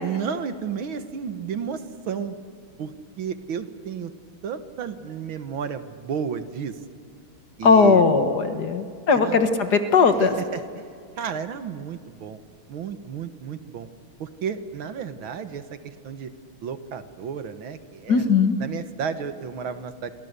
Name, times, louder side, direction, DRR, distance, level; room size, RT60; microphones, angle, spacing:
voice 1, 0.0-2.4 2.8-2.9 3.2-4.1 4.4-6.8 7.6-8.1 9.1-9.5 10.2-10.9 11.2-12.4 12.7-13.9 14.2-16.3 16.6-18.2 18.6-20.1, right 7 dB, 75° right, 10 dB, 2.0 m, -32 dB
voice 2, 7.6-10.4 18.1-18.6, left 4 dB, 55° left, 8 dB, 1.8 m, -18 dB
28.5 x 25.0 x 6.8 m, 2.3 s
omnidirectional pair, 2.3 m